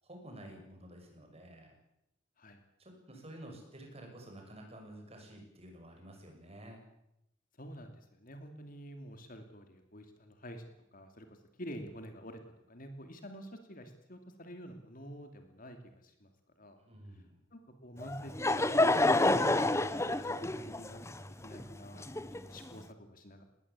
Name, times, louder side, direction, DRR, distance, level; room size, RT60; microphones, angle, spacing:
voice 1, 0.0-1.7 2.8-6.8 16.8-17.4, right 1 dB, 30° right, 3 dB, 6.8 m, -51 dB
voice 2, 7.6-10.6 10.9-11.3 11.6-12.4 12.7-16.3 16.6-16.8 17.5-23.4, equal, 45° left, 6 dB, 2.8 m, -48 dB
Laughter / Crowd, 18.0-22.7, left 2 dB, 15° left, 0.9 m, -29 dB
20.0 x 19.5 x 8.5 m, 0.83 s
head